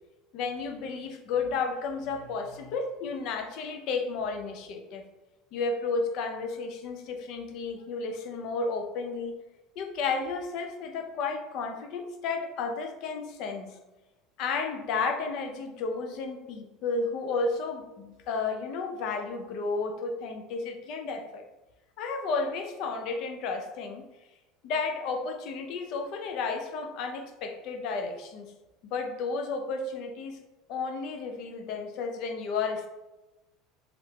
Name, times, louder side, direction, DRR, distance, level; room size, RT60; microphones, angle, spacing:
voice 1, 0.3-5.0 5.5-9.3 9.8-13.8 14.4-21.4 22.0-24.0 24.6-28.5 28.8-30.4 30.7-32.9, left 4 dB, 65° left, 4 dB, 0.5 m, -32 dB
3.2 x 2.5 x 3.2 m, 1.1 s
supercardioid pair, 90°, 0 cm